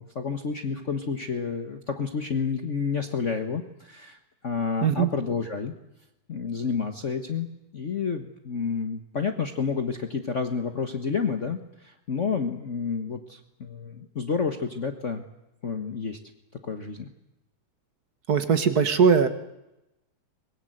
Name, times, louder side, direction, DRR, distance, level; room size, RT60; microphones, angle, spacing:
voice 1, 0.0-4.2 4.4-5.7 6.3-7.5 7.7-15.2 15.6-16.2 16.6-17.1, left 5 dB, 40° left, 6 dB, 1.5 m, -30 dB
voice 2, 18.3-19.3, right 6 dB, 50° right, 10 dB, 1.8 m, -20 dB
24.0 x 22.0 x 8.0 m, 0.92 s
omnidirectional pair, 2.3 m